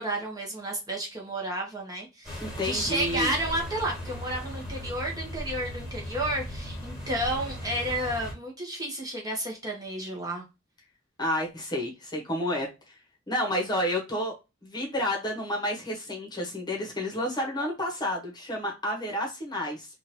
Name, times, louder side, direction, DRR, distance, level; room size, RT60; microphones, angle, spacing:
voice 1, 0.0-10.4, right 1 dB, 20° right, -2 dB, 1.0 m, -31 dB
sound 1, 2.2-8.3, equal, ahead, 1.8 m, -37 dB
voice 2, 2.4-3.3 11.2-12.7 13.3-14.3 14.6-19.9, left 1 dB, 20° left, -1 dB, 1.1 m, -30 dB
3.7 x 2.5 x 2.9 m, 0.26 s
head